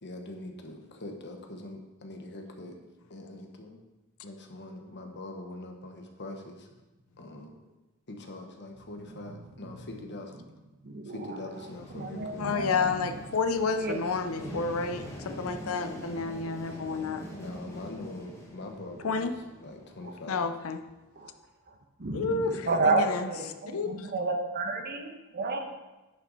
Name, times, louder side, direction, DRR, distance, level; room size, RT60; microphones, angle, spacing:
voice 1, 0.0-2.8 3.1-3.8 4.2-6.7 7.2-7.6 8.1-10.4 11.0-12.5 17.3-20.5 22.4-22.8, left 2 dB, 55° left, 3 dB, 1.2 m, -43 dB
voice 2, 10.8-11.1 11.9-12.9 13.8-14.0 14.4-14.7 21.2-21.3 22.0-25.6, right 3 dB, 45° right, 4 dB, 1.0 m, -30 dB
sound 1, 11.5-20.3, left 1 dB, 15° left, 1.5 m, -46 dB
voice 3, 12.4-17.2 19.0-19.3 20.3-20.8 22.1-23.3 23.7-24.1, left 4 dB, 70° left, 7 dB, 0.6 m, -30 dB
10.5 x 6.0 x 4.0 m, 1.1 s
head